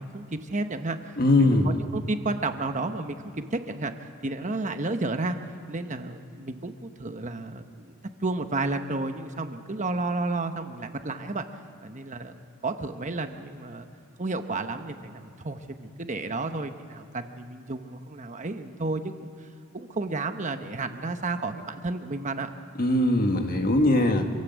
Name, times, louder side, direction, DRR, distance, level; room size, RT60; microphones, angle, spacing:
voice 1, 0.0-1.0 1.4-3.9 4.2-5.4 5.7-7.9 8.2-11.4 11.8-12.3 12.6-13.9 14.2-19.3 19.7-22.5, right 3 dB, 35° right, 7 dB, 1.0 m, -32 dB
voice 2, 1.2-1.8 22.8-24.3, left 1 dB, 40° left, 5 dB, 1.8 m, -21 dB
26.5 x 16.5 x 8.1 m, 2.5 s
head